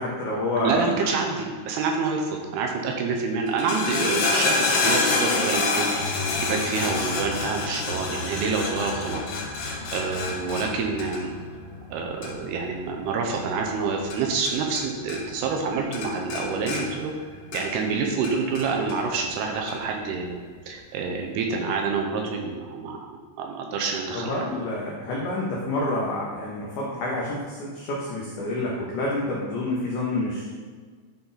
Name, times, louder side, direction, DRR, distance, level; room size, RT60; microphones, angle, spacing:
voice 1, 0.0-1.1 24.1-30.5, left 2 dB, 90° left, -4 dB, 1.7 m, -28 dB
voice 2, 0.6-9.2 9.9-11.4 11.9-17.1 17.5-20.4 20.7-24.4, right 4 dB, 80° right, 2 dB, 2.5 m, -27 dB
sound 1, 3.5-14.8 15.1-15.7 15.9-17.9 18.2-19.0 19.7-19.8, left 3 dB, 70° left, 2.6 m, -28 dB
10.5 x 3.9 x 3.9 m, 1.5 s
omnidirectional pair, 4.9 m